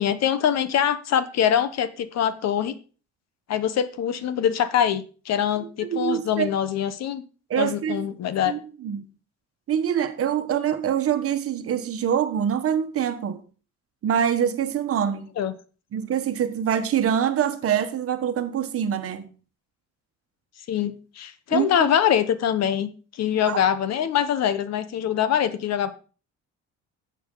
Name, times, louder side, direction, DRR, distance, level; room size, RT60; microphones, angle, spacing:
voice 1, 0.0-2.7 3.5-7.2 7.5-8.5 15.4-15.5 20.7-25.9, left 9 dB, 60° left, 1.0 m, -24 dB
voice 2, 5.8-6.5 7.5-8.0 8.5-9.0 9.7-13.4 14.0-15.3 15.9-19.3 21.5-21.9 23.4-23.6, right 9 dB, 50° right, 1.3 m, -25 dB
11.5 x 7.9 x 3.9 m
cardioid pair, 130°, 29 cm